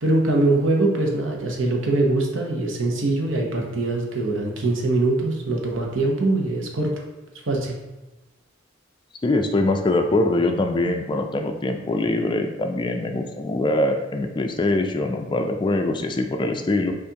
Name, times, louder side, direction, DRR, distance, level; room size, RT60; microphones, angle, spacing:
voice 1, 0.0-6.9 7.5-7.8, right 2 dB, 85° right, 0 dB, 0.8 m, -22 dB
voice 2, 9.2-16.9, left 2 dB, 25° left, 5 dB, 0.3 m, -23 dB
6.6 x 2.5 x 2.8 m, 1.1 s
head